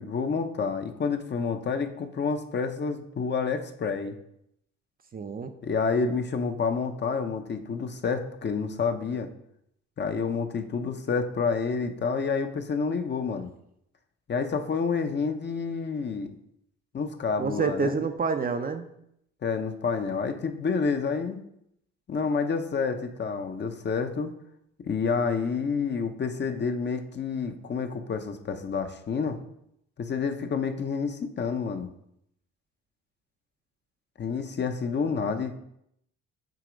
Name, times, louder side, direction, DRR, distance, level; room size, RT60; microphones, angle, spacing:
voice 1, 0.0-4.2 5.6-9.3 10.0-13.5 14.3-16.3 16.9-18.0 19.4-21.4 22.1-24.3 24.8-29.4 30.0-31.9 34.2-35.6, left 5 dB, 35° left, 7 dB, 0.8 m, -29 dB
voice 2, 5.1-5.5 17.4-18.9, right 5 dB, 30° right, 7 dB, 0.6 m, -28 dB
7.6 x 3.0 x 5.1 m, 0.75 s
supercardioid pair, 75°, 29 cm